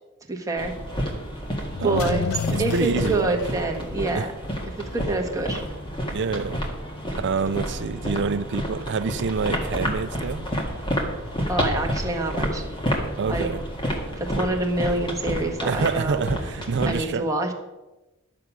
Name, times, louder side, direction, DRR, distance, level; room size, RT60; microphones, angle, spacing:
voice 1, 0.3-0.7 1.8-2.2 2.6-4.3 4.9-5.6 11.5-12.6 13.3-13.6 14.2-16.3 16.9-17.5, right 2 dB, 15° right, 1.5 m, -26 dB
sound 1, 0.6-17.0, equal, 25° left, 1.9 m, -30 dB
sound 2, 1.7-4.5 4.8-4.9, left 6 dB, 75° left, 0.3 m, -31 dB
voice 2, 2.5-3.4 4.1-4.3 6.1-6.6 7.2-10.5 13.2-13.6 15.6-17.3, right 5 dB, 55° right, 0.5 m, -27 dB
11.5 x 6.8 x 6.1 m
head